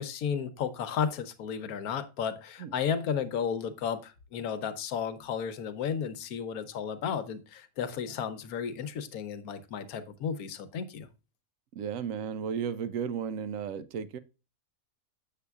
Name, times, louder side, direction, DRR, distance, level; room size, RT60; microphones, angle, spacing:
voice 1, 0.0-11.1, left 7 dB, 80° left, 1.2 m, -33 dB
voice 2, 11.7-14.2, right 7 dB, 70° right, 0.9 m, -34 dB
6.9 x 6.7 x 2.3 m
omnidirectional pair, 1.5 m